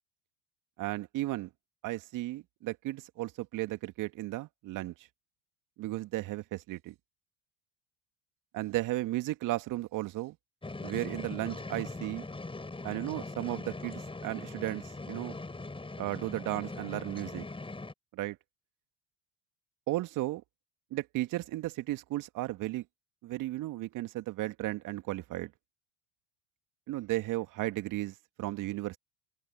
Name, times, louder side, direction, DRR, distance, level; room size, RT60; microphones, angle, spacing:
voice 1, 0.8-1.5 1.8-4.9 5.8-6.9 8.5-10.4 10.8-12.2 12.8-15.4 16.0-17.4 18.1-18.4 19.9-20.4 20.9-22.8 23.2-25.5 26.9-29.0, right 17 dB, 50° right, 2.2 m, -35 dB
sound 1, 10.6-17.9, left 3 dB, 15° left, 5.7 m, -41 dB
figure-of-eight pair, 65°, 40 cm